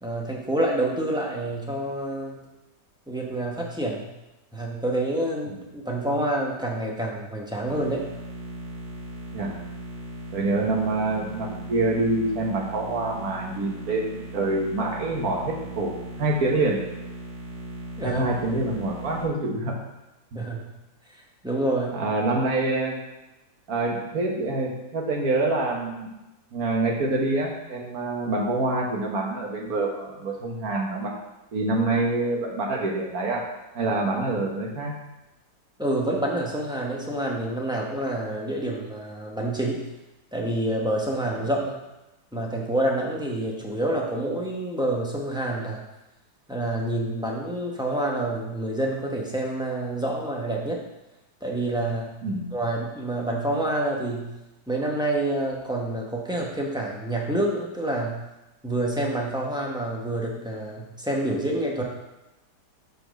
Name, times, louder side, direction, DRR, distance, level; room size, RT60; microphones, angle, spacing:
voice 1, 0.0-2.4 3.1-4.1 4.5-8.1 18.0-18.2 20.3-20.7 21.4-22.0 35.8-39.8 40.3-41.8 42.3-45.8 46.5-50.8 51.4-52.1 52.5-54.3 54.7-58.2 58.6-61.8, right 1 dB, 5° right, -2 dB, 0.7 m, -27 dB
sound 1, 7.7-19.2, right 2 dB, 80° right, 1.8 m, -38 dB
voice 2, 10.3-16.8 18.0-19.7 21.9-23.0 23.7-26.1 26.5-31.1 31.5-33.4 33.7-34.9 52.2-52.5, right 2 dB, 60° right, -1 dB, 1.7 m, -26 dB
5.3 x 4.5 x 6.3 m, 0.97 s
omnidirectional pair, 1.9 m